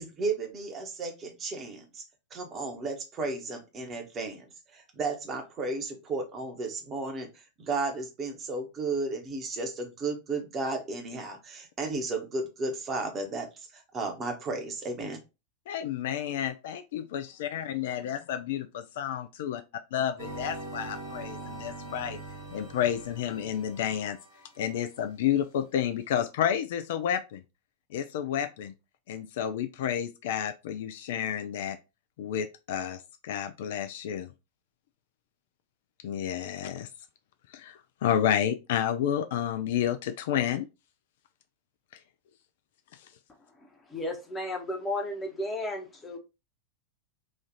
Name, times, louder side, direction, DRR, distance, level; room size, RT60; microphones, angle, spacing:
voice 1, 0.0-2.0 2.3-4.5 4.7-15.2, right 3 dB, 25° right, 1.0 m, -34 dB
voice 2, 15.7-19.6 19.9-22.2 22.5-24.2 24.6-27.4 27.9-28.7 29.1-31.8 32.2-34.3 36.0-36.9 37.5-40.7, left 9 dB, 55° left, 0.3 m, -30 dB
sound 1, 20.2-24.4, right 2 dB, 50° right, 1.2 m, -42 dB
voice 3, 43.9-46.2, left 1 dB, 15° left, 0.9 m, -33 dB
3.1 x 2.4 x 3.8 m
figure-of-eight pair, 90°, 0 cm